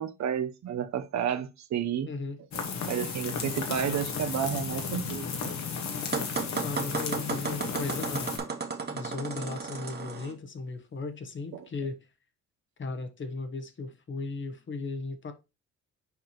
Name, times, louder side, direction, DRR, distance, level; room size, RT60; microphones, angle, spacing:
voice 1, 0.0-2.1 2.8-5.5 11.5-11.7, right 8 dB, 65° right, 0.9 m, -31 dB
voice 2, 2.0-2.4 6.6-8.4 8.9-12.0 12.8-15.3, left 3 dB, 40° left, 1.2 m, -36 dB
sound 1, 2.5-8.4, left 5 dB, 65° left, 1.7 m, -34 dB
sound 2, 6.1-10.3, right 5 dB, 35° right, 1.5 m, -34 dB
7.0 x 4.7 x 3.0 m
cardioid pair, 90°, 30 cm